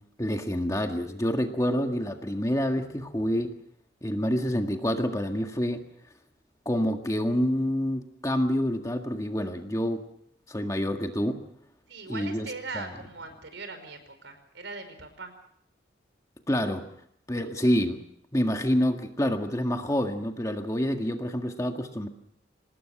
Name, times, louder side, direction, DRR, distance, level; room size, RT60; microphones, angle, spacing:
voice 1, 0.2-3.5 4.0-5.8 6.7-10.0 10.5-11.4 12.1-12.5 12.7-12.8 16.5-16.8 17.3-18.0 18.3-22.1, equal, 15° left, 4 dB, 1.8 m, -27 dB
voice 2, 11.9-15.3, right 3 dB, 80° right, 9 dB, 5.1 m, -40 dB
26.0 x 19.5 x 6.1 m, 0.70 s
head